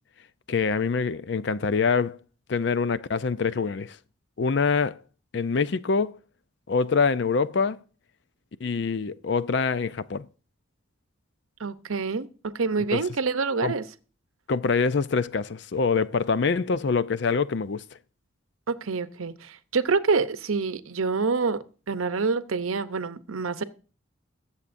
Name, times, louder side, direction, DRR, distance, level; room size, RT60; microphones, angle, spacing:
voice 1, 0.5-2.2 2.5-4.0 4.4-5.0 5.3-6.2 6.7-7.8 8.6-10.3 12.9-13.1 13.6-13.8 14.5-17.8, left 5 dB, 55° left, 0.4 m, -25 dB
voice 2, 11.6-13.8 18.7-21.6 21.9-23.6, right 4 dB, 90° right, 0.7 m, -27 dB
21.5 x 7.2 x 2.6 m
head